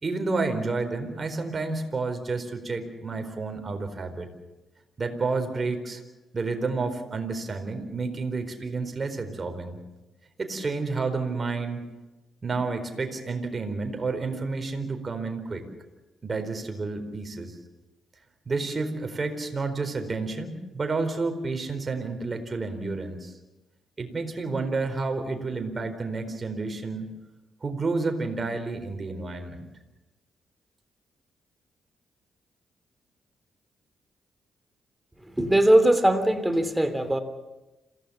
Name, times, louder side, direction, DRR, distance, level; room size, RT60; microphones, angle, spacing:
voice 1, 0.0-4.3 5.0-6.0 6.3-9.8 10.4-11.8 12.4-15.6 16.2-17.6 18.5-23.3 24.0-27.1 27.6-29.7, right 3 dB, 40° right, 5 dB, 4.3 m, -30 dB
voice 2, 35.3-37.2, right 1 dB, 10° right, 9 dB, 3.3 m, -20 dB
27.0 x 16.5 x 7.2 m, 1.1 s
hypercardioid pair, 45°, 0 cm